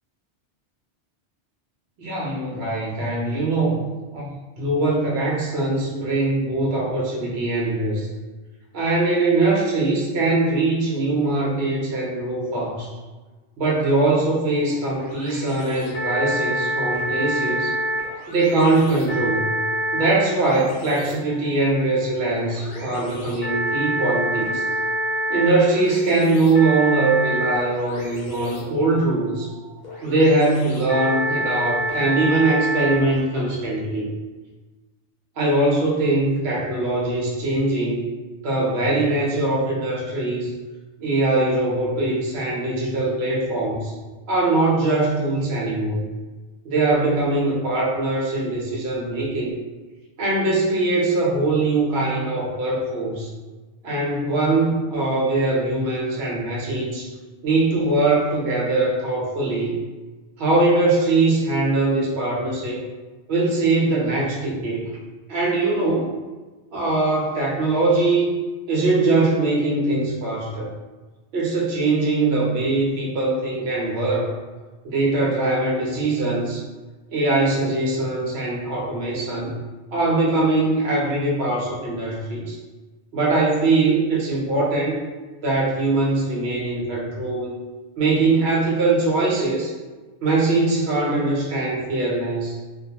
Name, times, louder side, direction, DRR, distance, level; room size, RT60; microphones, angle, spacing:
voice 1, 2.0-3.8 4.1-8.1 8.7-12.9 13.6-17.7 18.3-19.6 19.9-24.6 25.3-29.5 30.0-34.1 35.4-38.0 38.4-40.5 41.0-43.9 44.3-46.0 46.6-49.5 50.2-53.3 53.8-57.1 57.4-59.7 60.4-62.8 63.3-64.8 65.3-66.1 66.7-68.3 68.7-70.7 71.3-74.4 74.8-76.6 77.1-79.6 79.9-82.6 83.1-85.0 85.4-87.5 88.0-89.7 90.2-92.6, right 2 dB, 65° right, -4 dB, 0.8 m, -21 dB
sound 1, 14.1-33.2, right 1 dB, 60° left, 0.9 m, -28 dB
2.2 x 2.2 x 2.7 m, 1.3 s
omnidirectional pair, 1.2 m